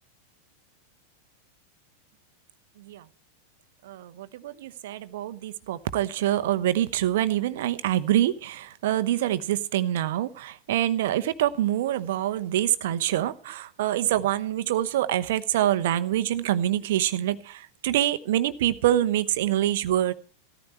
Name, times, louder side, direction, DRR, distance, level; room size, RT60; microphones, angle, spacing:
voice 1, 3.8-20.1, right 12 dB, 55° right, 12 dB, 0.9 m, -25 dB
16.0 x 14.0 x 4.3 m, 0.39 s
figure-of-eight pair, 90°, 0 cm